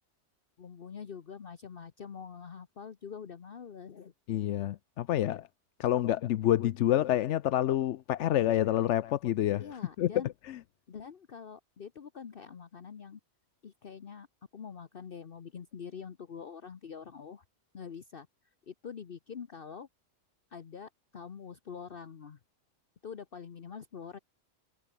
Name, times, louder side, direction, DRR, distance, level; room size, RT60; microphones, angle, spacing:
voice 1, 0.6-4.1 9.6-10.3 10.9-13.2 13.6-14.3 14.5-17.4 17.7-18.3 18.7-19.9 20.5-22.4 23.0-24.2, left 6 dB, 50° left, 1.1 m, -45 dB
voice 2, 4.3-5.5 5.8-9.7 10.0-10.1 10.4-10.6, left 12 dB, 75° left, 0.9 m, -28 dB
omnidirectional pair, 1.2 m